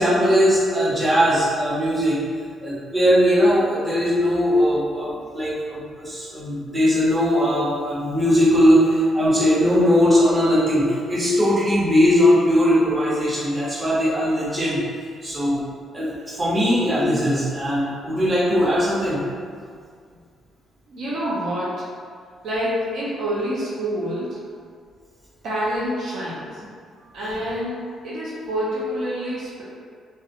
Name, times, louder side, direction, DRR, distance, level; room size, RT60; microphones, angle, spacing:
voice 1, 0.0-2.2 2.6-14.8 15.2-15.6 15.9-19.2, equal, 30° right, -9 dB, 1.0 m, -19 dB
voice 2, 20.9-21.8 22.4-24.4 25.4-26.5 27.1-29.6, equal, 75° right, -8 dB, 0.5 m, -27 dB
2.3 x 2.2 x 2.8 m, 2.1 s
cardioid pair, 90°, 0 cm